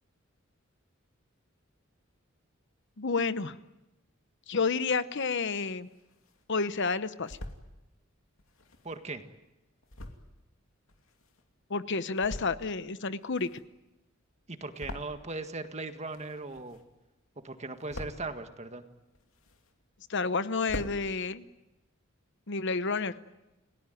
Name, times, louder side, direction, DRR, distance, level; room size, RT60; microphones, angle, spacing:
voice 1, 3.0-3.6 4.5-5.9 6.5-7.4 11.7-13.5 20.1-21.4 22.5-23.1, left 4 dB, 60° left, 13 dB, 0.9 m, -30 dB
sound 1, 5.6-6.5 6.9-7.7 8.4-11.6 12.0-12.8 13.1-15.5 15.8-17.1 17.4-18.4 18.9-20.0 20.3-20.4 20.6-21.0, left 1 dB, 75° left, 2.8 m, -44 dB
voice 2, 8.8-9.2 14.5-16.8 17.4-18.8, right 3 dB, 35° right, 7 dB, 1.8 m, -38 dB
30.0 x 17.5 x 9.3 m, 1.0 s
head